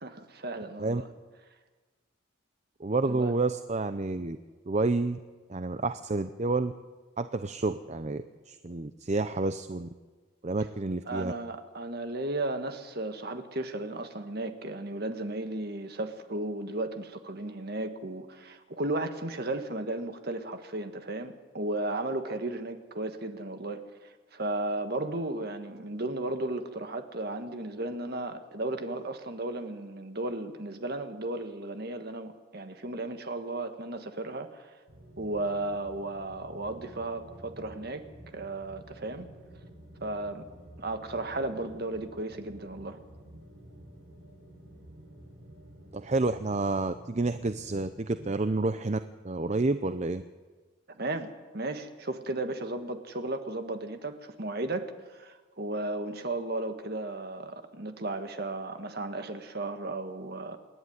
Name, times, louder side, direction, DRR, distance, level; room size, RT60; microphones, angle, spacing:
voice 1, 0.0-1.1 3.0-3.3 11.1-34.7 35.2-38.0 38.3-39.3 40.0-40.5 40.8-43.0 50.9-60.6, right 2 dB, 50° right, 7 dB, 1.7 m, -35 dB
voice 2, 2.8-4.4 4.7-5.2 5.5-6.7 7.2-9.9 10.4-11.3 45.9-50.2, right 3 dB, 35° right, 11 dB, 0.6 m, -29 dB
sound 1, 34.9-48.3, right 1 dB, 75° right, 8.0 m, -51 dB
28.0 x 11.0 x 9.7 m, 1.4 s
head